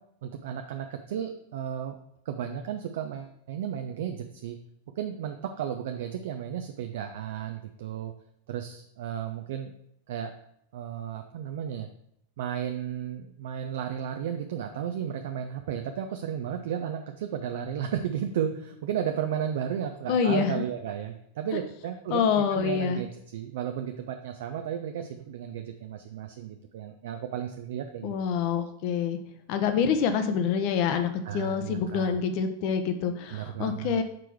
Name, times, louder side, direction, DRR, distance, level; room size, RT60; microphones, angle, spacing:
voice 1, 0.2-2.0 2.3-4.6 5.0-8.1 8.5-9.8 10.1-10.3 10.7-11.9 12.4-28.1 31.2-32.2 33.3-34.0, right 9 dB, 55° right, 6 dB, 0.5 m, -33 dB
voice 2, 20.1-20.6 21.5-21.6 22.1-23.0 28.0-29.2 29.5-34.0, left 7 dB, 45° left, 8 dB, 0.8 m, -26 dB
6.1 x 4.6 x 4.6 m, 0.73 s
figure-of-eight pair, 90°, 0 cm